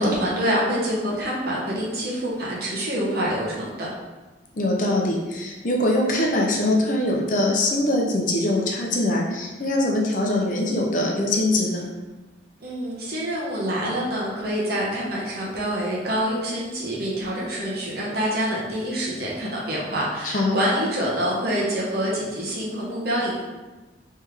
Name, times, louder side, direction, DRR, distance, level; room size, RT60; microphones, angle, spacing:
voice 1, 0.0-3.9 12.6-23.4, equal, 55° right, -5 dB, 1.0 m, -26 dB
voice 2, 4.5-11.9 20.2-20.6, left 1 dB, 45° left, -1 dB, 0.6 m, -23 dB
3.5 x 3.2 x 3.3 m, 1.2 s
head